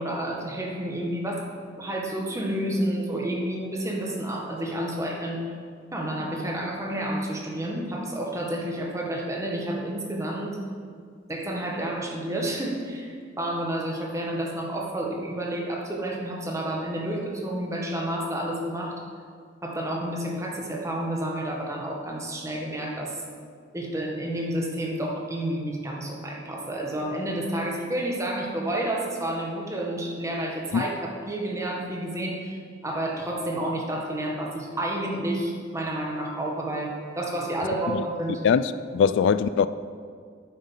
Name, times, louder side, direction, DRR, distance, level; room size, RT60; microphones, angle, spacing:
voice 1, 0.0-1.4 1.8-5.4 5.9-10.6 11.3-19.0 19.6-23.1 23.7-32.6 32.8-38.5, right 1 dB, 15° right, -1 dB, 1.5 m, -30 dB
voice 2, 38.4-39.7, left 6 dB, 65° left, 14 dB, 0.3 m, -21 dB
9.2 x 7.5 x 5.6 m, 2.1 s
head